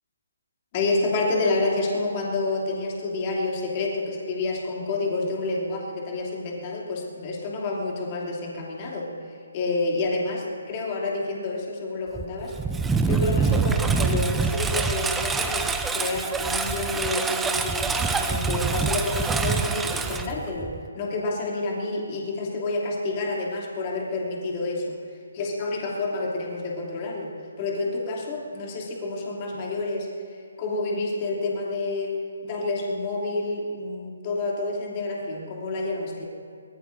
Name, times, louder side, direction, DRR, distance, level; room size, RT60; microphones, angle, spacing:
voice 1, 0.7-9.1 9.5-12.6 13.1-25.0 25.4-27.3 27.6-30.1 30.6-36.3, left 2 dB, 30° left, -2 dB, 2.8 m, -29 dB
Engine, 12.2-20.9, right 4 dB, 5° right, 0.5 m, -25 dB
22.5 x 20.0 x 2.7 m, 2.3 s
figure-of-eight pair, 140°, 0 cm